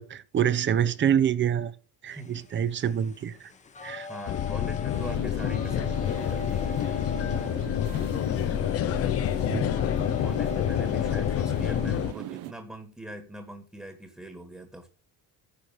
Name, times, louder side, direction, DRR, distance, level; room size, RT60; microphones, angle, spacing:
voice 1, 0.0-1.8 2.0-3.5 3.8-4.1 9.5-9.7, right 9 dB, 30° right, 0.7 m, -26 dB
sound 1, 2.1-12.1, left 4 dB, 20° left, 1.0 m, -43 dB
voice 2, 4.1-6.8 10.2-14.9, right 1 dB, 5° right, 1.6 m, -42 dB
sound 2, 4.3-12.1, left 11 dB, 40° left, 0.6 m, -28 dB
sound 3, 4.9-12.5, right 14 dB, 65° right, 1.1 m, -40 dB
10.0 x 6.6 x 5.9 m
cardioid pair, 155°, 38 cm